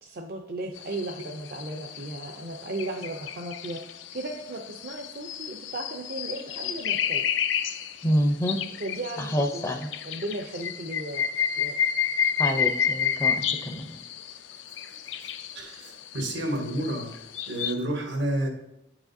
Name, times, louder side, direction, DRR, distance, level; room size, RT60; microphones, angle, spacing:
voice 1, 0.0-3.8 4.1-7.2 8.8-11.3 11.5-11.8, right 2 dB, 55° right, 2 dB, 0.4 m, -36 dB
sound 1, 0.8-17.7, left 8 dB, 90° left, 0.4 m, -31 dB
voice 2, 8.0-8.6 9.2-9.9 12.4-14.0, equal, 15° left, 4 dB, 0.4 m, -27 dB
voice 3, 15.5-17.1 17.5-18.5, right 1 dB, 85° right, 2 dB, 1.2 m, -29 dB
9.4 x 4.8 x 2.6 m, 0.86 s
head